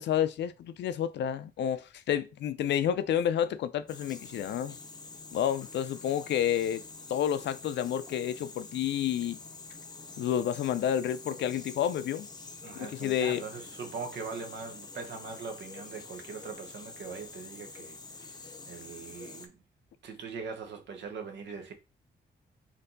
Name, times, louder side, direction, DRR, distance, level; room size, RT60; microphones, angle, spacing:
voice 1, 0.0-4.8 5.3-6.8 7.1-9.4 10.2-12.3 12.8-13.4, left 9 dB, 80° left, 0.5 m, -30 dB
sound 1, 3.9-19.5, left 4 dB, 25° left, 0.6 m, -47 dB
voice 2, 12.6-19.6 20.0-21.7, right 5 dB, 85° right, 1.1 m, -41 dB
4.4 x 2.7 x 3.9 m
cardioid pair, 120°, 18 cm